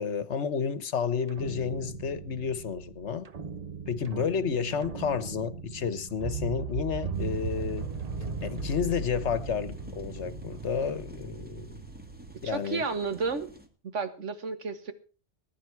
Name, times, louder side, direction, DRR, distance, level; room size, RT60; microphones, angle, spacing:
voice 1, 0.0-3.3 3.9-7.9 8.4-11.8 12.4-12.9, left 6 dB, 70° left, 1.4 m, -31 dB
sound 1, 1.3-12.6, right 5 dB, 35° right, 0.9 m, -38 dB
sound 2, 7.1-13.7, equal, 10° right, 2.2 m, -51 dB
voice 2, 12.4-13.5 13.8-14.9, right 4 dB, 85° right, 1.9 m, -32 dB
20.5 x 10.5 x 4.7 m
omnidirectional pair, 1.2 m